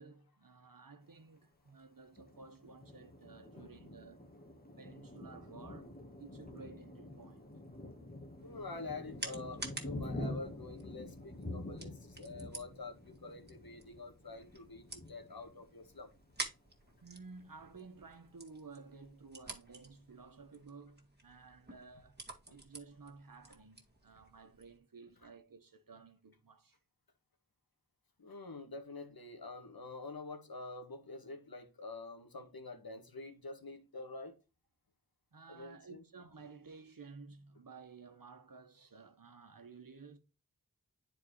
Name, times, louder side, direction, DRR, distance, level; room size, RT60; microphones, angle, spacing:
voice 1, 0.0-4.3 4.8-7.4 17.0-22.2 22.5-26.8 35.3-40.2, right 4 dB, 65° right, 1.3 m, -54 dB
Thunder, 2.1-16.5 17.0-17.1 17.4-18.0, left 1 dB, 25° left, 1.4 m, -47 dB
voice 2, 8.4-16.1 22.5-22.6 28.2-34.4 35.5-36.0, left 3 dB, 80° left, 1.6 m, -47 dB
sound 1, 8.4-24.8, right 2 dB, 30° right, 1.9 m, -50 dB
10.0 x 4.6 x 3.2 m
wide cardioid pair, 55°, 35 cm